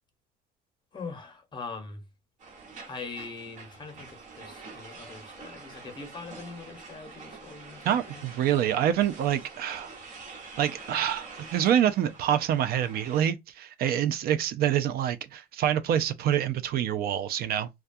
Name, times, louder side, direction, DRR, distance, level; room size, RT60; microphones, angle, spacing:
voice 1, 0.9-2.0 2.9-8.2, left 4 dB, 25° left, 0.9 m, -42 dB
sound 1, 2.4-13.3, right 4 dB, 45° right, 1.2 m, -46 dB
voice 2, 7.8-9.9 10.6-17.7, right 10 dB, 65° right, 0.4 m, -26 dB
2.3 x 2.2 x 2.5 m
cardioid pair, 110°, 17 cm